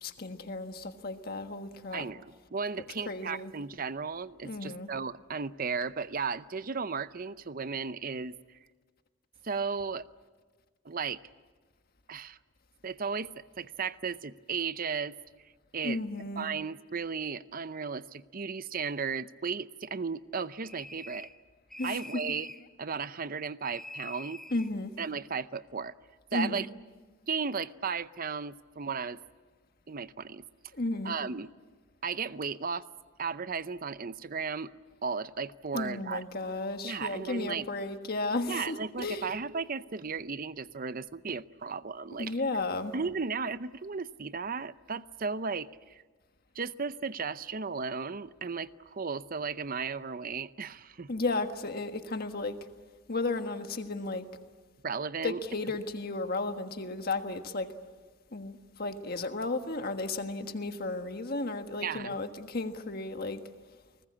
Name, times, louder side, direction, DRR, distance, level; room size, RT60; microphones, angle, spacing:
voice 1, 0.0-2.0 3.1-3.5 4.4-4.9 15.8-16.5 21.8-22.1 24.5-24.9 26.3-26.6 30.7-31.2 35.7-39.3 42.2-42.9 51.1-52.6 53.1-54.3 55.2-57.7 58.3-63.4, left 2 dB, 50° left, 1.5 m, -34 dB
voice 2, 1.9-8.4 9.4-10.0 10.8-11.2 12.1-12.4 12.8-15.2 15.7-16.0 16.4-21.3 21.8-22.5 22.8-24.4 25.0-25.9 26.3-26.7 27.3-29.2 29.9-30.4 31.0-31.5 32.0-32.8 33.2-34.7 35.0-36.2 36.8-37.7 38.5-42.4 42.9-46.0 46.6-51.1 54.8-55.4 61.8-62.2, right 5 dB, 45° right, 0.7 m, -35 dB
sound 1, 20.6-21.4 21.7-22.7 23.6-24.7, left 1 dB, ahead, 0.8 m, -45 dB
30.0 x 20.0 x 8.6 m
head